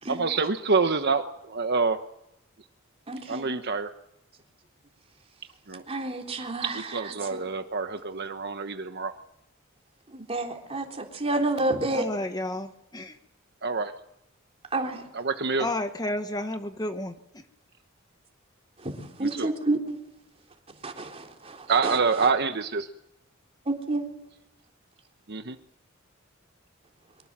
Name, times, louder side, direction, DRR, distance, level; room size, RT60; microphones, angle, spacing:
voice 1, 0.1-2.0 3.3-3.9 5.7-5.8 6.9-9.1 13.6-13.9 15.1-15.7 19.4-19.5 21.7-22.9 25.3-25.6, right 4 dB, 55° right, 7 dB, 1.2 m, -26 dB
voice 2, 3.1-3.6 5.9-7.4 10.1-12.1 14.7-15.1 18.8-20.0 20.8-22.3 23.7-24.2, right 2 dB, 30° right, 2 dB, 3.6 m, -30 dB
voice 3, 11.9-13.2 15.6-17.4, left 1 dB, 20° left, 8 dB, 1.1 m, -32 dB
24.0 x 23.0 x 7.5 m, 0.83 s
head